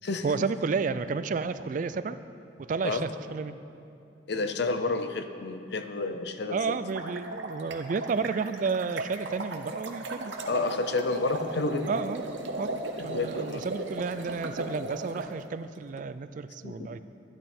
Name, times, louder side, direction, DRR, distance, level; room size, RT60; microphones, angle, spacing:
voice 1, 0.2-2.2 2.7-3.6 6.5-10.3 11.9-12.2 12.6-17.0, right 5 dB, 45° right, 13 dB, 0.3 m, -31 dB
voice 2, 4.3-6.8 10.5-11.9 13.0-13.7 16.6-16.9, left 3 dB, 60° left, 8 dB, 0.6 m, -30 dB
sound 1, 7.0-15.3, right 2 dB, 85° right, 0.9 m, -37 dB
12.0 x 10.5 x 4.4 m, 2.6 s
head